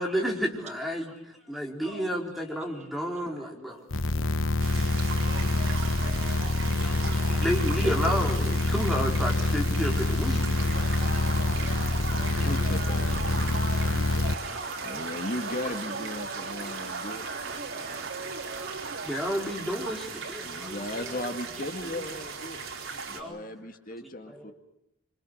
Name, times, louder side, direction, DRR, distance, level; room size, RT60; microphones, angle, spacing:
voice 1, 0.0-3.8 6.8-11.4 12.4-12.5 14.3-15.0 16.6-17.0 17.6-18.1 18.5-21.5 21.8-22.0 22.9-23.5 24.0-24.5, equal, ahead, -1 dB, 4.5 m, -33 dB
sound 1, 3.9-14.3, left 2 dB, 65° left, 1.2 m, -26 dB
sound 2, 4.6-23.2, right 5 dB, 75° right, 4.3 m, -39 dB
voice 2, 5.1-7.4 11.0-11.2 11.7-12.3, right 4 dB, 35° right, 8 dB, 1.2 m, -43 dB
sound 3, 10.6-19.1, right 3 dB, 55° right, 2.2 m, -38 dB
voice 3, 12.3-13.6 14.8-17.3 20.4-22.6 22.9-24.5, left 1 dB, 40° left, 6 dB, 2.0 m, -37 dB
26.5 x 26.5 x 6.4 m, 0.80 s
head